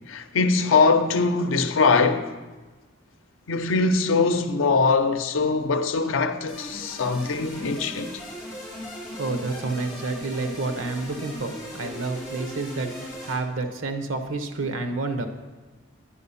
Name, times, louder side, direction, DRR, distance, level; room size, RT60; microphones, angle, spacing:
voice 1, 0.1-2.3 3.5-8.1, left 4 dB, 90° left, 0.6 m, -22 dB
sound 1, 6.5-13.3, equal, 20° left, 3.2 m, -38 dB
voice 2, 8.9-15.3, right 3 dB, 90° right, 0.9 m, -29 dB
10.0 x 4.8 x 5.6 m
head